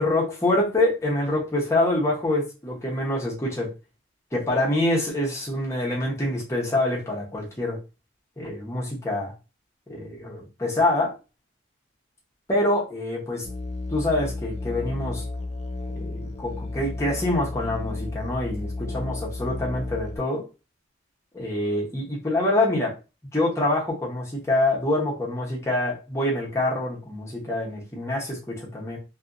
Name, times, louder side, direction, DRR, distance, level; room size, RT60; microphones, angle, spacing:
voice 1, 0.0-3.7 4.3-7.8 8.4-9.3 9.9-11.1 12.5-13.5 13.9-15.2 15.9-20.4 21.3-22.9 23.3-29.0, left 1 dB, 15° left, -3 dB, 0.8 m, -25 dB
Musical instrument, 13.4-20.2, left 2 dB, 35° left, 0.4 m, -33 dB
2.7 x 2.6 x 2.5 m, 0.30 s
head